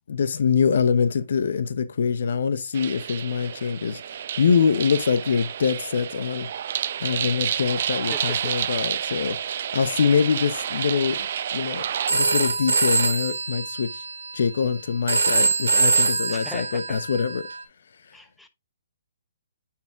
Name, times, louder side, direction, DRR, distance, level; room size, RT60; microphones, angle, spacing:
voice 1, 0.1-6.5 7.0-11.3 11.5-14.0 14.3-17.4, left 6 dB, 65° left, 0.8 m, -24 dB
sound 1, 2.7-12.1, right 9 dB, 55° right, 0.4 m, -30 dB
voice 2, 8.1-8.5 9.0-9.1 16.3-17.0 18.1-18.5, left 1 dB, 5° left, 0.9 m, -40 dB
Telephone, 12.1-17.6, right 3 dB, 75° right, 1.9 m, -24 dB
9.3 x 4.7 x 3.5 m
figure-of-eight pair, 135°, 0 cm